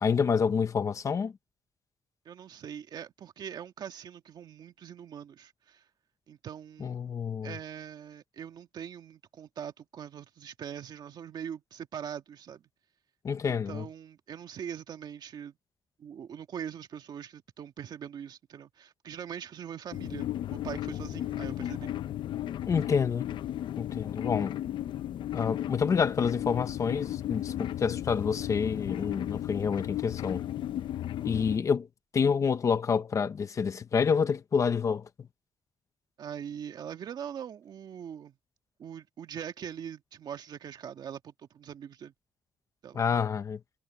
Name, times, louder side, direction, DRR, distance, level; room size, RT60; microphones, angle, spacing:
voice 1, 0.0-1.3 6.8-7.5 13.2-13.8 22.7-23.3 23.8-24.5 25.3-30.4 31.2-31.9 32.1-35.1 42.9-43.6, left 6 dB, 35° left, 1.0 m, -28 dB
voice 2, 2.3-5.8 6.3-7.0 7.4-12.7 13.4-15.6 16.0-21.9 36.2-38.4 38.8-42.1 42.8-43.0, right 8 dB, 50° right, 2.1 m, -42 dB
sound 1, 19.9-31.6, left 12 dB, 60° left, 0.7 m, -35 dB
cardioid pair, 150°, 9 cm